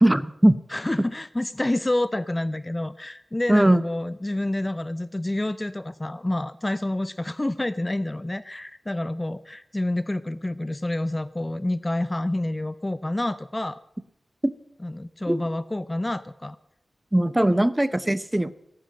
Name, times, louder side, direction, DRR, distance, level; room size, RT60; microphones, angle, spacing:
voice 1, 0.0-0.6 3.5-3.8 15.3-15.4 17.1-18.5, right 1 dB, 15° right, 16 dB, 0.7 m, -19 dB
voice 2, 0.7-13.8 14.8-16.6, left 1 dB, 20° left, 16 dB, 0.5 m, -28 dB
17.5 x 10.0 x 7.5 m, 0.80 s
wide cardioid pair, 95°, 0 cm